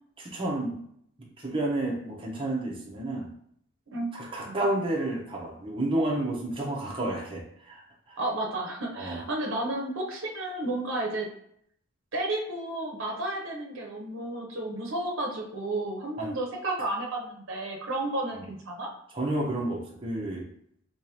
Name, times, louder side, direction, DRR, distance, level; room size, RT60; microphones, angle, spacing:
voice 1, 0.2-0.8 1.2-3.3 4.1-7.8 8.1-8.2 9.0-9.2 16.2-16.3 19.1-20.5, right 1 dB, 25° right, -2 dB, 0.7 m, -30 dB
voice 2, 8.2-11.3 12.1-18.9, right 2 dB, 60° right, -1 dB, 0.7 m, -32 dB
3.5 x 2.9 x 2.9 m, 0.69 s
head